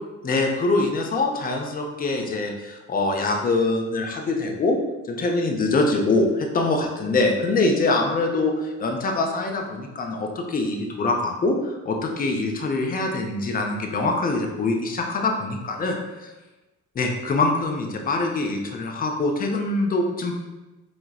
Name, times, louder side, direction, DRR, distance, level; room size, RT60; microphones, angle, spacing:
voice 1, 0.2-4.8 5.1-16.3 17.0-20.4, left 2 dB, 25° left, 2 dB, 0.5 m, -24 dB
4.5 x 2.1 x 2.3 m, 1.1 s
hypercardioid pair, 50°, 37 cm